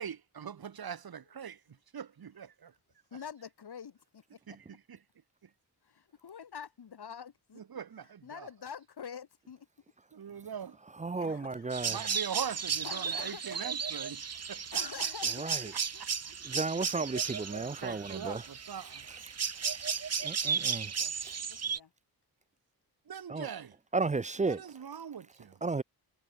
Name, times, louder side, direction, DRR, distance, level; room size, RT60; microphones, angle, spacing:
voice 1, 0.0-1.6 1.9-2.7 4.5-5.0 7.7-8.0 8.3-8.5 10.1-10.8 11.1-11.4 11.8-14.2 14.5-14.8 15.7-16.3 17.5-19.0 23.1-23.7 24.4-25.6, right 7 dB, 65° right, 2.5 m, -42 dB
voice 2, 3.1-4.6 5.8-7.6 8.2-9.7 11.0-11.8 12.8-13.7 14.7-16.0 20.9-21.9, left 7 dB, 75° left, 7.2 m, -47 dB
voice 3, 11.0-12.0 15.4-15.7 16.4-18.4 20.2-20.9 21.2-21.3 23.3-23.5 23.9-24.6 25.6-25.8, right 3 dB, 20° right, 0.4 m, -33 dB
sound 1, 11.7-21.8, right 6 dB, 40° right, 1.0 m, -34 dB
cardioid pair, 90°, 40 cm